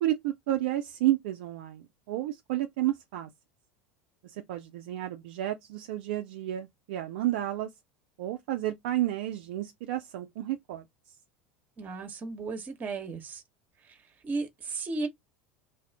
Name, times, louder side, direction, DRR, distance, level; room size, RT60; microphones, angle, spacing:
voice 1, 0.0-3.3 4.2-7.7 8.2-11.1, right 14 dB, 60° right, 0.3 m, -31 dB
voice 2, 11.8-13.4 14.2-15.1, right 3 dB, 30° right, 0.9 m, -34 dB
2.5 x 2.3 x 3.3 m
figure-of-eight pair, 75°, 6 cm